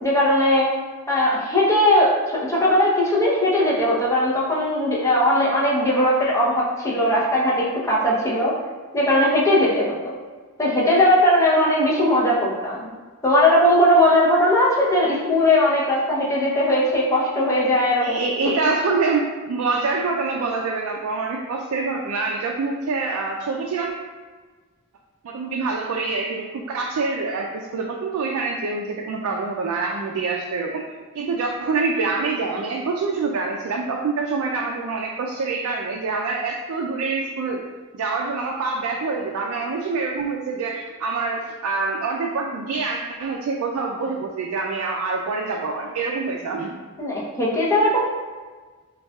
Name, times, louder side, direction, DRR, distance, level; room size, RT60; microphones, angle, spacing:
voice 1, 0.0-0.7 1.1-2.2 2.5-8.5 8.9-10.1 10.6-12.9 13.2-18.2 47.0-48.1, left 1 dB, 15° left, -6 dB, 0.6 m, -19 dB
voice 2, 18.0-23.9 25.2-30.8 31.1-37.7 37.9-46.8, right 4 dB, 85° right, 0 dB, 0.3 m, -26 dB
5.3 x 2.3 x 2.2 m, 1.4 s
head